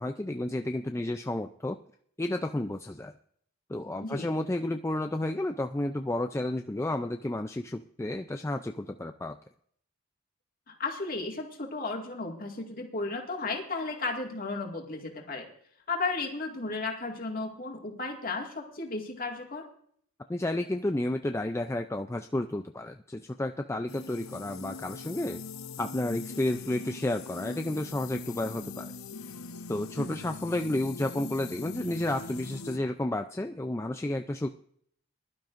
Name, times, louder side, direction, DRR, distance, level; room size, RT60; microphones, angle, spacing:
voice 1, 0.0-1.8 2.2-3.1 3.7-9.4 20.3-25.4 25.8-28.9 29.7-34.5, left 1 dB, 10° left, 6 dB, 0.4 m, -31 dB
voice 2, 10.7-15.5 15.9-19.6 29.9-30.2, left 3 dB, 40° left, 1 dB, 2.1 m, -34 dB
sound 1, 23.9-32.8, left 4 dB, 80° left, 0.8 m, -42 dB
21.0 x 12.0 x 2.6 m, 0.64 s
head